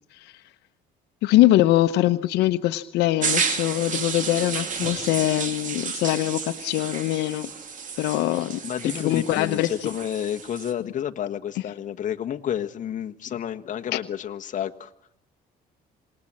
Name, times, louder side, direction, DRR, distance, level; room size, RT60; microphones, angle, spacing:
voice 1, 1.2-7.5 8.0-8.6 9.0-9.9 13.9-14.0, left 15 dB, 85° left, 10 dB, 1.0 m, -22 dB
sound 1, 3.2-10.7, right 6 dB, 50° right, 2.7 m, -31 dB
voice 2, 8.6-14.9, left 9 dB, 50° left, 5 dB, 1.5 m, -30 dB
27.0 x 19.5 x 7.5 m, 0.74 s
cardioid pair, 110°, 17 cm